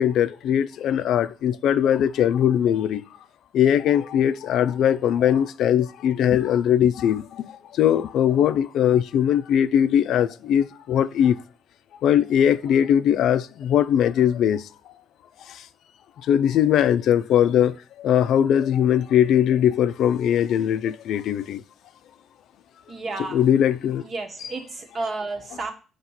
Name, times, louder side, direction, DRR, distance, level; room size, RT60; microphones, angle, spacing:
voice 1, 0.0-3.0 3.5-11.4 12.0-14.7 15.5-15.6 16.2-21.6 23.2-24.0 24.4-24.6 25.5-25.6, left 9 dB, 80° left, 0.3 m, -20 dB
voice 2, 22.9-23.4 24.0-25.7, right 3 dB, 50° right, 1.2 m, -32 dB
5.7 x 3.0 x 5.5 m
cardioid pair, 90°, 0 cm